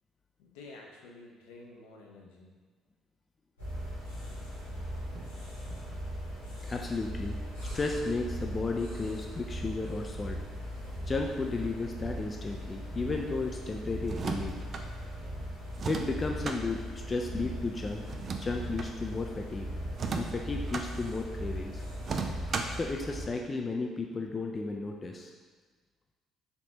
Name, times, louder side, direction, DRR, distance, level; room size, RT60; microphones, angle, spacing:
voice 1, 0.4-2.5, left 2 dB, 75° left, -1 dB, 0.6 m, -50 dB
sound 1, 3.6-23.2, equal, 90° left, 1.4 m, -39 dB
voice 2, 6.6-10.4 11.1-14.6 15.9-18.0 18.4-19.7 20.1-21.8 22.7-25.3, left 3 dB, 30° left, 2 dB, 0.4 m, -34 dB
sound 2, 14.0-14.9 15.7-16.6 18.1-18.9 19.9-20.9 22.0-22.8, right 5 dB, 45° right, 0.4 m, -35 dB
4.4 x 3.0 x 2.8 m, 1.4 s
hypercardioid pair, 50°, 0 cm